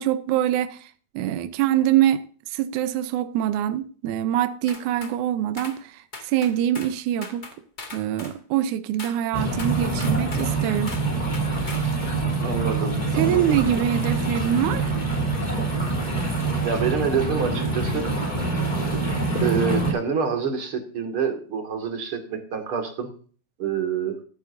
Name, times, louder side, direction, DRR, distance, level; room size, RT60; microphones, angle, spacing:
voice 1, 0.0-2.2 2.5-7.4 7.9-10.9 13.1-14.9, right 11 dB, 75° right, 2.1 m, -24 dB
sound 1, 4.7-5.2 5.6-5.8 6.1-7.0 7.2-8.4 9.0-9.2 9.6-10.5 10.9-11.1 11.3-11.9, left 3 dB, 50° left, 0.5 m, -39 dB
sound 2, 9.3-19.9, right 3 dB, 15° left, 3.0 m, -25 dB
voice 2, 12.4-13.6 16.6-18.1 19.4-23.1 23.6-24.2, right 6 dB, 45° right, 2.6 m, -27 dB
13.5 x 12.5 x 2.6 m
omnidirectional pair, 3.7 m